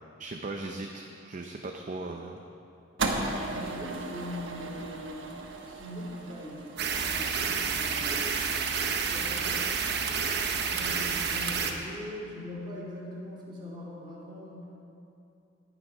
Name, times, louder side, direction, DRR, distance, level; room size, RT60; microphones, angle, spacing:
voice 1, 0.2-2.4, right 2 dB, 40° right, 3 dB, 0.6 m, -38 dB
sound 1, 3.0-9.3, right 3 dB, 85° right, 1.1 m, -37 dB
voice 2, 3.3-5.2 5.6-8.6 9.0-14.7, left 1 dB, 25° right, -6 dB, 2.7 m, -42 dB
sound 2, 6.8-11.7, right 6 dB, 60° right, 0.9 m, -29 dB
19.0 x 6.5 x 4.8 m, 2.7 s
head